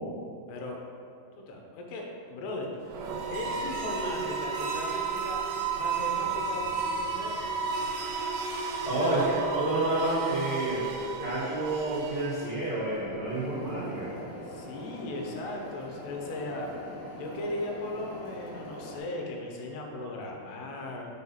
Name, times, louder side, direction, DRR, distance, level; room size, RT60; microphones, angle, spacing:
voice 1, 1.4-2.0 2.3-3.0 3.3-5.4 5.7-7.4 8.9-9.3 14.5-16.7 17.2-21.1, left 2 dB, 80° left, 1 dB, 2.9 m, -37 dB
sound 1, 2.8-12.8, right 5 dB, 85° right, 1.9 m, -33 dB
voice 2, 8.8-10.9 11.2-14.1, right 2 dB, 70° right, -11 dB, 1.0 m, -29 dB
sound 2, 13.3-19.0, left 1 dB, 50° left, 2.1 m, -43 dB
6.2 x 4.9 x 5.6 m, 2.6 s
omnidirectional pair, 4.8 m